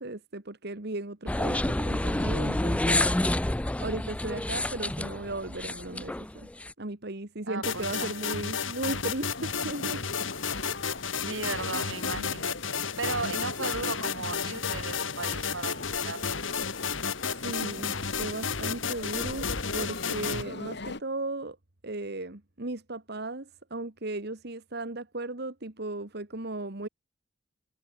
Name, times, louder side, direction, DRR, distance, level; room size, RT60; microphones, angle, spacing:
voice 1, 0.0-3.1 3.8-6.5 6.8-10.1 17.3-21.6 21.8-26.9, right 2 dB, 55° right, 1.9 m, -36 dB
sound 1, 1.3-6.7, left 1 dB, 5° left, 0.4 m, -28 dB
voice 2, 7.4-8.2 11.1-12.6 13.0-16.4, right 3 dB, 85° right, 8.0 m, -36 dB
sound 2, 7.6-20.4, left 6 dB, 85° left, 3.3 m, -32 dB
sound 3, 9.3-21.0, left 2 dB, 60° left, 2.3 m, -41 dB
head